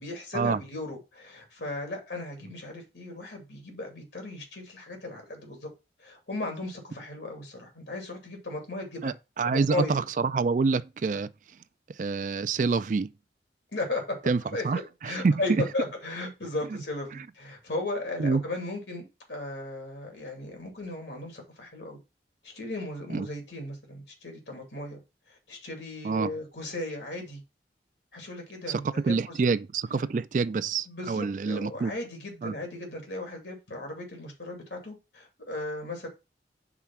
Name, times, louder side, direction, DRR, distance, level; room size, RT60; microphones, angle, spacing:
voice 1, 0.0-5.7 6.0-9.1 9.4-10.0 13.7-14.2 14.5-22.0 22.4-25.0 25.3-27.4 28.1-29.3 30.9-36.1, left 2 dB, 80° left, 2.5 m, -36 dB
voice 2, 9.0-11.3 12.0-13.1 14.3-15.6 18.2-18.4 23.1-23.3 26.0-26.3 28.7-31.9 32.4-32.5, right 4 dB, 45° right, 0.3 m, -27 dB
4.9 x 4.1 x 5.8 m
head